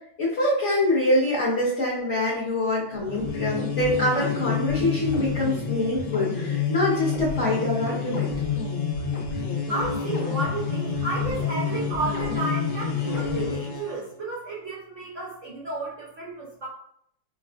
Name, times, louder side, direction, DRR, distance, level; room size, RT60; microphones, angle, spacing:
voice 1, 0.2-8.3, left 1 dB, 50° left, -7 dB, 0.9 m, -25 dB
sound 1, 3.0-14.0, left 5 dB, 70° left, 1.1 m, -28 dB
voice 2, 9.7-16.7, right 2 dB, 75° right, -5 dB, 0.6 m, -32 dB
4.8 x 2.3 x 2.2 m, 0.69 s
omnidirectional pair, 2.1 m